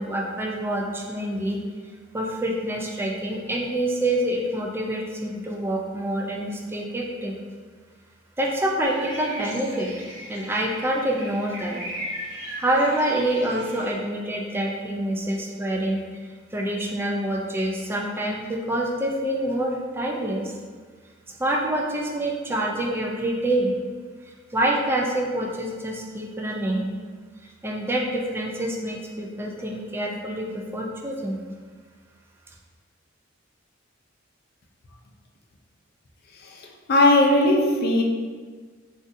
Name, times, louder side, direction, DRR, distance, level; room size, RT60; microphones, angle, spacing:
voice 1, 0.0-1.6 2.1-7.3 8.4-9.9 10.3-11.8 12.6-16.0 16.5-20.5 21.3-23.7 24.5-26.9 27.6-31.4, right 1 dB, 10° right, -1 dB, 0.3 m, -26 dB
sound 1, 8.8-13.9, equal, 70° right, 1.0 m, -38 dB
voice 2, 36.4-38.0, left 1 dB, 50° left, 1 dB, 0.4 m, -19 dB
3.9 x 2.5 x 2.5 m, 1.6 s
head